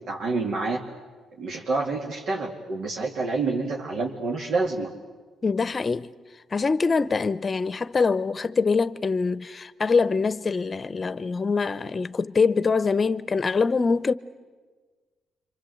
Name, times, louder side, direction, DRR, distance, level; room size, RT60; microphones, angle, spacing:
voice 1, 0.1-0.8 1.4-4.9, right 3 dB, 65° right, 2.5 m, -28 dB
voice 2, 5.4-6.1 6.5-14.1, left 4 dB, 35° left, 0.9 m, -24 dB
27.0 x 25.5 x 8.0 m
cardioid pair, 90°, 0 cm